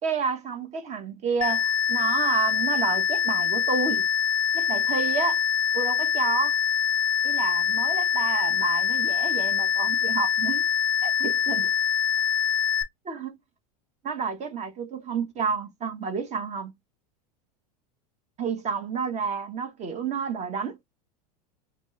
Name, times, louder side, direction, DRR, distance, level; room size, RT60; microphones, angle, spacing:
voice 1, 0.0-4.1 4.5-5.4 5.7-6.6 7.2-10.6 11.0-11.7 13.0-13.4 14.0-16.7 18.4-20.8, right 5 dB, 35° right, 1.0 m, -30 dB
sound 1, 1.4-12.8, left 8 dB, 20° left, 0.7 m, -24 dB
4.2 x 2.2 x 3.1 m
hypercardioid pair, 100°, 20 cm